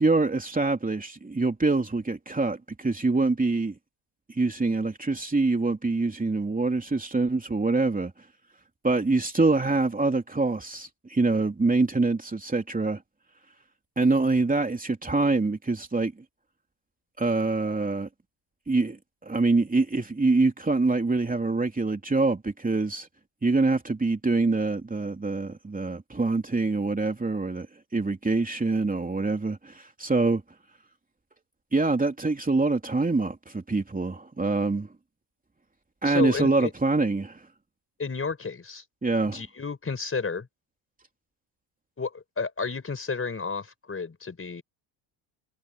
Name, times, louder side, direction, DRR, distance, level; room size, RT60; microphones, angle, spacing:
voice 1, 0.0-3.7 4.3-8.1 8.8-13.0 14.0-16.1 17.2-18.1 18.7-19.0 19.2-23.1 23.4-27.7 27.9-30.4 31.7-34.9 36.0-37.4 39.0-39.4, right 3 dB, 15° right, 3.1 m, -25 dB
voice 2, 36.0-36.7 38.0-38.8 39.3-40.5 42.0-44.6, left 4 dB, 25° left, 5.5 m, -32 dB
supercardioid pair, 75°, 50 cm